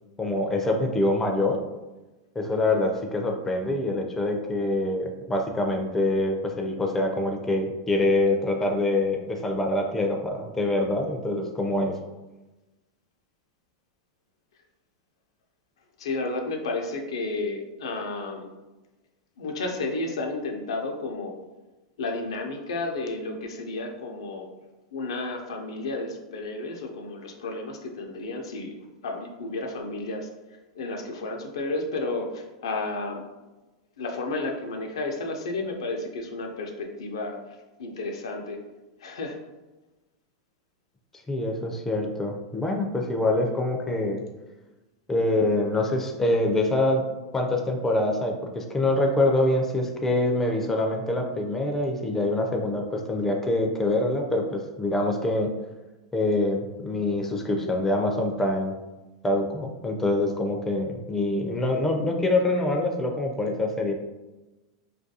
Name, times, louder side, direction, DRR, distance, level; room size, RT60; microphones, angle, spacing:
voice 1, 0.2-1.6 2.4-12.0 41.3-44.2 45.1-47.0 47.3-55.5 56.1-58.7 59.2-63.9, left 2 dB, 10° left, 2 dB, 0.3 m, -25 dB
voice 2, 16.0-18.5 19.4-21.3 22.0-24.5 24.9-30.3 30.7-33.2 34.0-37.4 37.8-38.6 39.0-39.4, left 2 dB, 85° left, 3 dB, 0.4 m, -32 dB
2.3 x 2.2 x 2.7 m, 1.1 s
hypercardioid pair, 120°, 3 cm